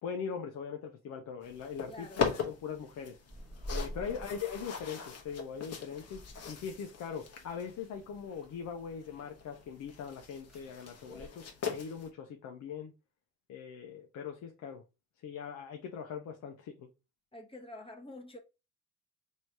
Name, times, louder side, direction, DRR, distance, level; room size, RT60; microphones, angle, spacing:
voice 1, 0.0-3.2 3.7-6.2 6.5-12.9 13.5-14.8 15.2-16.9, left 7 dB, 70° left, 0.7 m, -41 dB
sound 1, 1.4-12.1, left 6 dB, 55° left, 1.1 m, -41 dB
voice 2, 1.9-2.5 3.9-4.3 17.3-18.4, left 1 dB, 20° left, 1.1 m, -48 dB
sound 2, 3.3-11.3, equal, ahead, 1.3 m, -48 dB
3.1 x 2.7 x 4.5 m
cardioid pair, 90°, 30 cm